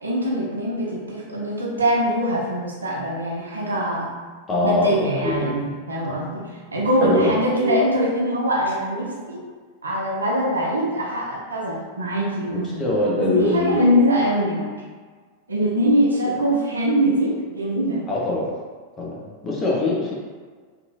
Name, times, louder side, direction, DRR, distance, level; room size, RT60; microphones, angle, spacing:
voice 1, 0.0-4.1 4.6-9.4 9.8-12.8 13.2-14.7 15.5-18.0, equal, 75° right, -3 dB, 0.6 m, -23 dB
voice 2, 4.5-5.5 7.0-7.9 12.8-13.8 18.1-18.5 19.0-20.1, left 2 dB, 20° left, -4 dB, 0.7 m, -23 dB
2.8 x 2.5 x 2.7 m, 1.5 s
figure-of-eight pair, 90°, 0 cm